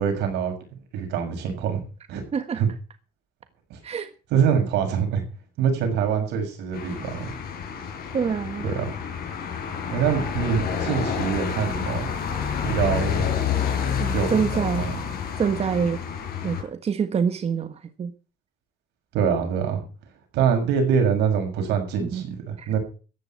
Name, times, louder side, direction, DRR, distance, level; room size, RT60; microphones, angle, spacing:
voice 1, 0.0-1.8 2.1-2.2 2.5-2.7 3.7-3.8 4.3-5.2 5.6-7.3 8.6-8.9 9.9-12.1 12.6-13.3 14.1-15.0 19.1-19.9 20.3-22.8, right 7 dB, 85° right, 4 dB, 6.7 m, -24 dB
voice 2, 2.3-2.6 3.8-4.1 8.1-8.7 14.0-15.0 15.4-16.0 16.4-18.1 22.0-22.3 22.6-22.7, right 6 dB, 40° right, 10 dB, 1.4 m, -26 dB
sound 1, 6.7-16.6, left 7 dB, 60° left, 6.1 m, -29 dB
14.5 x 11.0 x 5.7 m, 0.36 s
cardioid pair, 110°, 17 cm